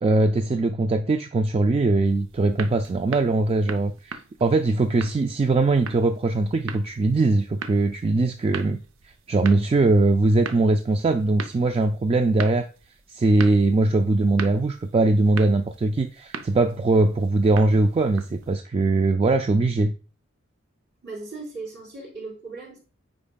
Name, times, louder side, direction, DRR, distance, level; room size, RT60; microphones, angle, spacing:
voice 1, 0.0-8.8 9.3-12.7 13.1-19.9, right 2 dB, 30° right, 7 dB, 0.3 m, -21 dB
sound 1, 2.1-18.5, right 5 dB, 80° right, 0.6 m, -40 dB
voice 2, 21.0-22.8, right 3 dB, 55° right, -1 dB, 3.3 m, -37 dB
8.6 x 5.0 x 2.3 m, 0.35 s
head